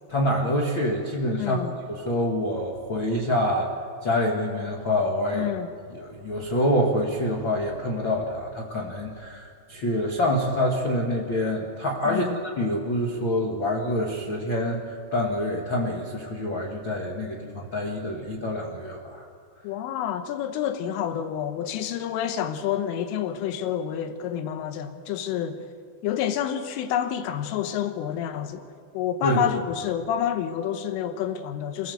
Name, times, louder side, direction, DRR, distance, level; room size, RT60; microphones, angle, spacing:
voice 1, 0.1-1.6 1.9-3.7 4.0-5.5 5.9-12.2 12.6-19.2 29.2-29.5, left 1 dB, 65° left, 1.2 m, -26 dB
voice 2, 1.4-1.7 5.3-5.7 12.1-12.4 19.6-25.6 26.0-28.6 29.0-31.9, left 9 dB, 80° left, 3.8 m, -28 dB
27.5 x 16.5 x 7.9 m
omnidirectional pair, 5.7 m